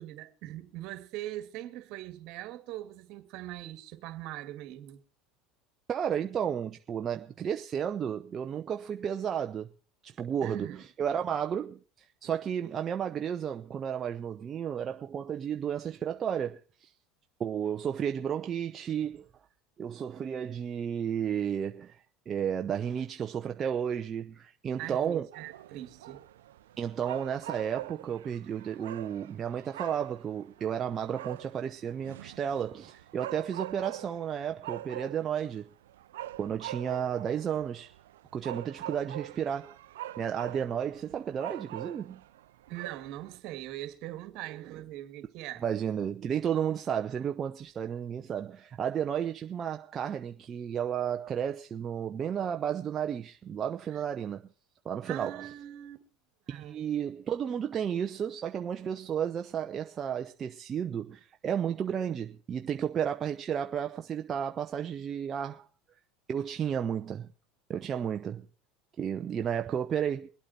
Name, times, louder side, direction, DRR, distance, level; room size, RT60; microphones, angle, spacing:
voice 1, 0.0-5.0 10.4-10.7 24.8-26.2 42.7-45.6 53.9-54.0 55.1-56.0 56.5-56.8, right 14 dB, 60° right, 1.9 m, -41 dB
voice 2, 5.9-9.7 10.0-16.9 17.4-19.3 19.8-25.3 26.8-35.7 36.4-37.9 38.3-39.8 40.2-42.2 45.6-54.4 54.8-55.5 56.5-65.7 66.3-67.3 67.7-68.5 69.0-70.3, right 8 dB, 35° right, 0.8 m, -33 dB
sound 1, 25.3-43.4, right 13 dB, 85° right, 0.6 m, -44 dB
23.5 x 8.6 x 4.4 m
supercardioid pair, 100°, 0 cm